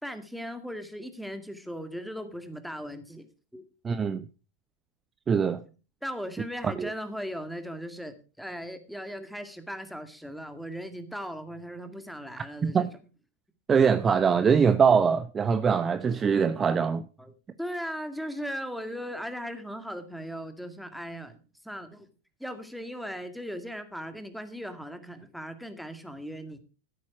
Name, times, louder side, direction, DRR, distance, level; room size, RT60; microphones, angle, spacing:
voice 1, 0.0-3.3 3.5-3.6 5.4-5.5 6.0-12.9 17.2-17.3 17.6-21.4 21.6-22.1 22.4-26.6, equal, ahead, 2.0 m, -38 dB
voice 2, 3.8-4.2 5.3-5.6 6.6-6.9 12.6-12.9 13.7-17.0, right 6 dB, 20° right, 0.8 m, -23 dB
15.0 x 8.6 x 4.8 m
figure-of-eight pair, 90°, 0 cm